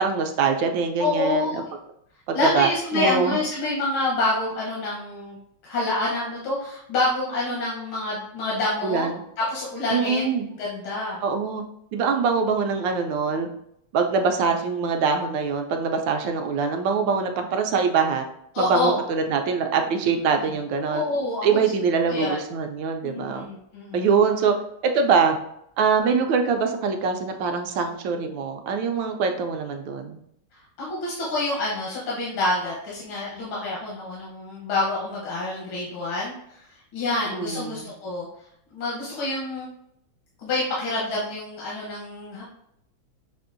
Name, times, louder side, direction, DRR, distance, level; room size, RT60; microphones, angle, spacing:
voice 1, 0.0-1.6 2.3-2.7 2.9-3.4 8.8-9.1 9.9-10.5 11.2-11.6 11.9-13.5 13.9-18.3 18.6-21.0 21.4-23.4 23.9-24.5 24.8-25.4 25.8-30.2 37.3-37.9, right 5 dB, 75° right, 5 dB, 1.2 m, -23 dB
voice 2, 1.0-1.6 2.3-5.4 5.6-9.1 9.5-11.2 18.5-19.0 20.4-20.5 20.9-21.7 22.0-22.4 23.0-24.1 30.8-38.3 38.7-39.7 40.4-42.5, left 2 dB, 80° left, -6 dB, 1.8 m, -27 dB
6.7 x 2.6 x 2.5 m, 0.73 s
omnidirectional pair, 2.2 m